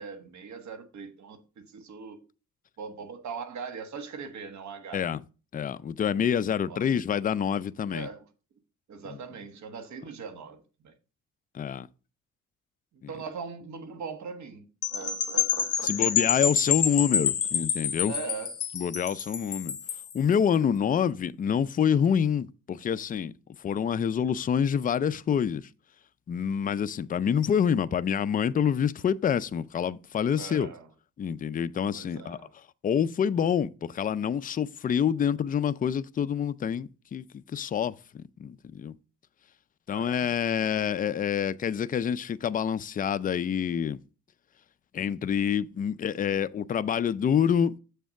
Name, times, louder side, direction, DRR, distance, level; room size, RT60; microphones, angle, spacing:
voice 1, 0.0-2.2 2.8-5.1 6.7-6.9 7.9-8.2 8.9-10.9 12.9-16.3 18.1-18.6 30.4-30.9 31.9-32.5 39.9-40.2, right 5 dB, 70° right, 1.4 m, -40 dB
voice 2, 5.5-8.1 9.1-9.2 11.5-11.9 13.0-13.1 15.8-18.1 18.7-19.8 20.1-23.3 23.6-25.7 26.3-30.7 31.2-32.4 32.8-39.0 39.9-44.0 44.9-47.8, left 8 dB, 30° left, 0.4 m, -27 dB
sound 1, 14.8-20.1, left 8 dB, 50° left, 1.1 m, -28 dB
7.2 x 3.4 x 6.3 m
cardioid pair, 90°, 30 cm